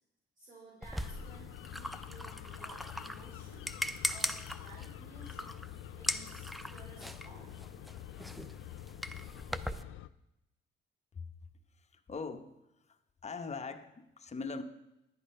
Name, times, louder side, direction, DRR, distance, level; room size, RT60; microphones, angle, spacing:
voice 1, 0.4-3.6 4.1-5.6 5.9-7.7, right 2 dB, 45° right, -5 dB, 4.1 m, -55 dB
sound 1, 0.8-9.8, equal, ahead, 0.5 m, -40 dB
sound 2, 1.0-10.1, left 15 dB, 85° left, 0.4 m, -47 dB
voice 2, 11.8-12.6 12.9-13.0 13.2-14.6, left 4 dB, 35° left, 7 dB, 1.0 m, -41 dB
11.5 x 8.5 x 5.5 m, 0.90 s
cardioid pair, 90°, 20 cm